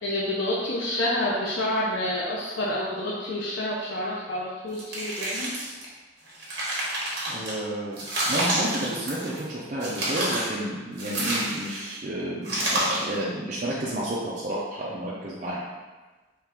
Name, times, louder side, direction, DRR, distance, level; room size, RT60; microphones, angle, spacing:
voice 1, 0.0-5.5, left 1 dB, 80° left, -5 dB, 0.6 m, -28 dB
sound 1, 4.7-5.8 6.3-7.5 8.0-9.4 9.8-10.5 11.0-11.9 12.4-13.1, right 1 dB, 55° right, 1.2 m, -28 dB
voice 2, 7.3-8.0 8.3-15.6, right 1 dB, 40° right, -6 dB, 0.5 m, -31 dB
4.5 x 2.4 x 3.4 m, 1.2 s
head